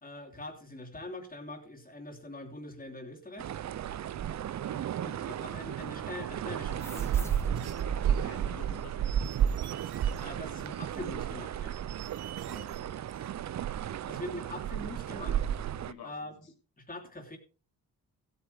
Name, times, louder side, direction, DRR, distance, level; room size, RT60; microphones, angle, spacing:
voice 1, 0.0-3.5 5.0-7.3 10.2-11.8 14.1-15.6 16.0-16.3 16.8-17.4, left 2 dB, 20° left, 3 dB, 3.1 m, -43 dB
sound 1, 3.4-15.9, right 10 dB, 45° right, 0.5 m, -33 dB
voice 2, 4.5-4.9 8.1-9.1 12.4-13.2 15.8-16.4, left 6 dB, 70° left, 3 dB, 3.0 m, -51 dB
sound 2, 6.8-9.8, left 1 dB, 5° left, 1.5 m, -46 dB
sound 3, 7.5-10.3 10.6-13.3, right 12 dB, 75° right, 1.0 m, -51 dB
16.0 x 8.5 x 3.5 m, 0.37 s
cardioid pair, 100°, 39 cm